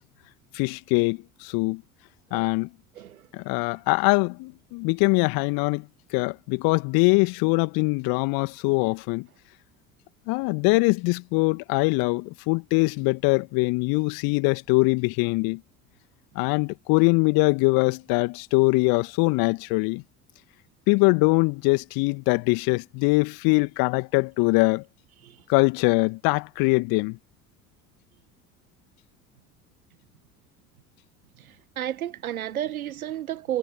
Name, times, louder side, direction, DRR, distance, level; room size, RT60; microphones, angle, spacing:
voice 1, 0.5-1.8 2.3-2.7 3.3-5.9 6.1-9.3 10.3-15.6 16.4-20.0 20.9-24.8 25.5-27.2, left 29 dB, 55° left, 2.1 m, -22 dB
voice 2, 2.9-3.3 25.2-25.4 31.4-33.6, right 11 dB, 75° right, 1.8 m, -32 dB
figure-of-eight pair, 65°, 43 cm